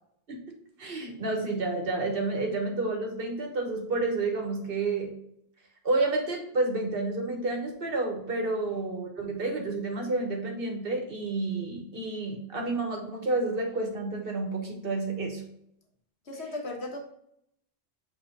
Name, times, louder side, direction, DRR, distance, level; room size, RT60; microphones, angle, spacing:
voice 1, 0.8-5.1 5.8-15.4, right 2 dB, 60° right, 2 dB, 1.6 m, -30 dB
voice 2, 16.3-17.0, left 2 dB, 80° left, 1 dB, 1.6 m, -36 dB
6.1 x 4.5 x 3.9 m, 0.74 s
omnidirectional pair, 1.1 m